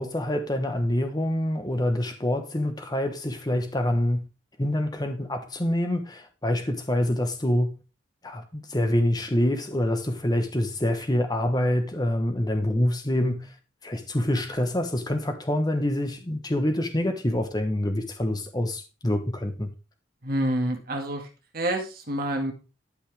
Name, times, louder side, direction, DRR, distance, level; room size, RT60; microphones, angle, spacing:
voice 1, 0.0-4.3 4.6-7.8 8.2-13.5 13.8-19.7, left 1 dB, 20° left, 1.1 m, -26 dB
voice 2, 20.2-21.3 21.5-22.5, right 1 dB, 50° right, 1.9 m, -27 dB
11.5 x 5.6 x 3.3 m
head